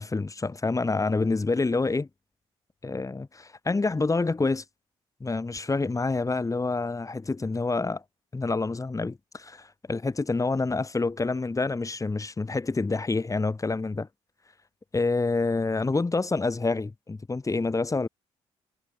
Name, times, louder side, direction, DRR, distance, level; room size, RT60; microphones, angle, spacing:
voice 1, 0.0-2.1 2.8-4.6 5.2-8.0 8.3-14.1 14.9-18.1, left 3 dB, 25° left, 5.3 m, -27 dB
supercardioid pair, 60°, 12 cm